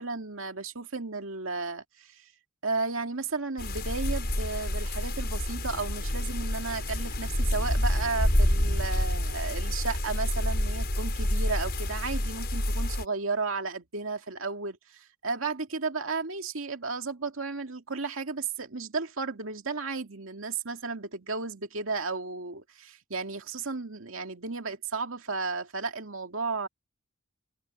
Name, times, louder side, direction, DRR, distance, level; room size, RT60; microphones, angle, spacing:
voice 1, 0.0-2.3 2.6-26.7, right 4 dB, 75° right, 2.3 m, -34 dB
sound 1, 3.6-13.0, left 1 dB, 50° left, 6.3 m, -28 dB
head